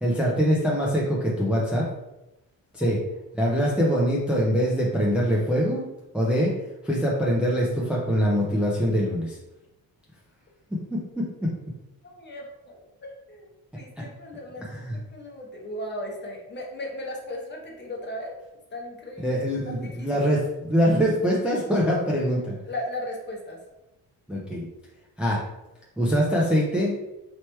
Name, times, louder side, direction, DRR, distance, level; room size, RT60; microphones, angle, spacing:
voice 1, 0.0-1.9 2.7-3.0 3.3-5.8 6.1-6.5 6.8-9.4 10.9-11.2 14.6-15.0 19.2-22.6 24.3-24.6 25.2-25.4 26.0-27.0, equal, 5° right, -5 dB, 0.4 m, -23 dB
voice 2, 12.0-13.5 13.7-18.4 18.7-20.3 22.7-23.6, left 1 dB, 30° left, -1 dB, 0.8 m, -37 dB
3.2 x 3.0 x 4.4 m, 0.96 s
wide cardioid pair, 170°, 38 cm